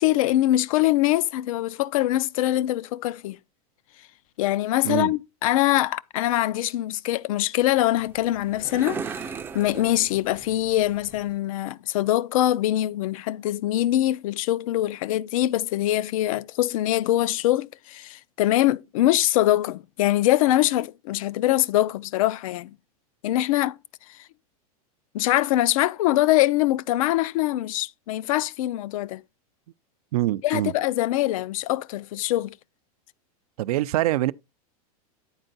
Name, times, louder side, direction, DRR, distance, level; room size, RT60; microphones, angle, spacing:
voice 1, 0.0-3.4 4.4-9.3 9.5-22.7 23.2-23.8 25.1-29.2 30.4-32.6, left 14 dB, 65° left, 0.4 m, -23 dB
sound 1, 7.8-11.4, right 6 dB, 10° right, 0.4 m, -38 dB
voice 2, 30.1-30.7 33.6-34.3, right 15 dB, 80° right, 0.4 m, -24 dB
8.8 x 4.4 x 3.9 m
supercardioid pair, 150°, 19 cm